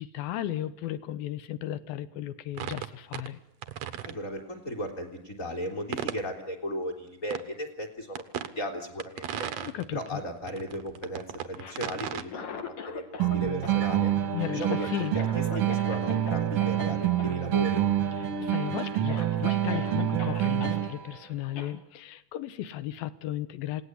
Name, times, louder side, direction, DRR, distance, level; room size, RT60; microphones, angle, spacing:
voice 1, 0.0-3.4 9.6-10.2 14.3-15.2 18.2-23.8, left 13 dB, 70° left, 15 dB, 2.6 m, -35 dB
sound 1, 2.5-3.3 3.6-4.1 5.9-6.2 7.3-7.4 8.1-8.5 9.0-10.1 10.5-12.2, right 10 dB, 75° right, 1.5 m, -35 dB
voice 2, 4.0-9.5 9.9-14.1 14.5-17.8, equal, 20° left, 2 dB, 3.4 m, -36 dB
Cough, 11.4-13.4 13.6-16.3 16.6-16.8 17.2-17.4 17.6-18.2 18.6-18.7 19.1-20.8 21.6-21.7, left 5 dB, 50° left, 3.1 m, -41 dB
sound 2, 13.2-21.2, right 11 dB, 55° right, 1.7 m, -27 dB
28.0 x 18.5 x 9.8 m, 0.81 s
omnidirectional pair, 4.9 m